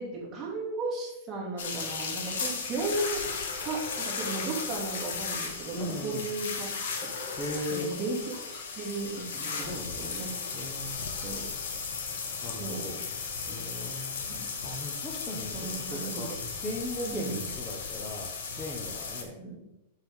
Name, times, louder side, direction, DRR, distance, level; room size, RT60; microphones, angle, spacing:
voice 1, 0.0-6.7 7.7-8.2 8.5-10.3 11.2-11.5 12.6-12.8 13.5-13.6 14.3-14.5 15.5-16.3 17.0-17.4 19.4-19.6, right 3 dB, 15° right, -5 dB, 2.6 m, -35 dB
sound 1, 1.6-19.2, left 5 dB, 80° left, 1.4 m, -36 dB
voice 2, 5.7-6.3 7.4-7.9 9.5-10.1 10.5-11.1 12.4-13.1 13.5-14.2 14.6-16.3 16.6-18.3 18.6-19.4, left 1 dB, 10° left, -4 dB, 1.1 m, -38 dB
7.5 x 6.5 x 3.7 m, 0.90 s
supercardioid pair, 160°, 0 cm